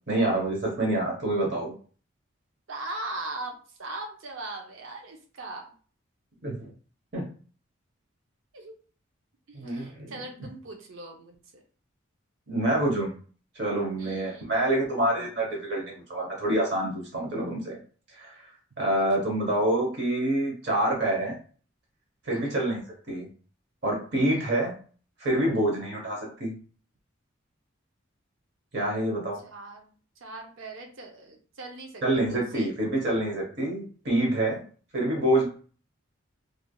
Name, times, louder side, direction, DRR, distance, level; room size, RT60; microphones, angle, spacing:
voice 1, 0.1-1.7 6.4-6.7 7.1-7.2 9.5-10.1 12.5-13.1 13.5-17.8 18.1-18.5 18.8-21.4 22.2-22.8 23.1-23.3 23.8-24.7 25.2-26.5 28.7-29.4 32.0-34.6 34.9-35.5, right 1 dB, 50° right, -1 dB, 0.9 m, -27 dB
voice 2, 2.7-5.7 8.5-8.7 9.5-11.6 14.0-14.5 22.3-22.6 24.3-24.5 29.4-29.9 30.2-32.0 32.3-32.7, right 2 dB, 70° right, 2 dB, 0.6 m, -40 dB
3.2 x 2.4 x 2.2 m, 0.41 s
head